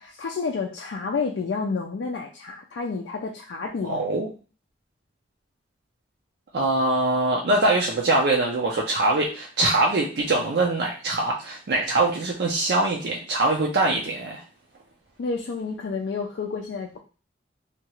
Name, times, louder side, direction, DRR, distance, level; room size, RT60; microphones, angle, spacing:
voice 1, 0.1-4.2 15.2-17.0, left 4 dB, 75° left, 1 dB, 0.4 m, -30 dB
voice 2, 3.8-4.3 6.5-14.4, right 2 dB, 65° right, -1 dB, 0.5 m, -23 dB
2.8 x 2.3 x 2.9 m, 0.36 s
head